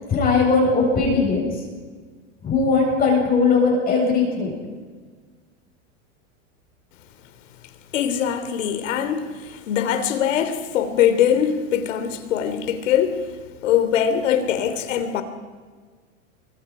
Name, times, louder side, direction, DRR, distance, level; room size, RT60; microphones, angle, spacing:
voice 1, 0.1-1.5 2.4-4.5, left 4 dB, 25° left, 7.6 m, -19 dB
voice 2, 7.9-13.2 13.6-15.2, left 9 dB, 75° left, 3.2 m, -22 dB
29.0 x 23.5 x 5.0 m
supercardioid pair, 145°, 38 cm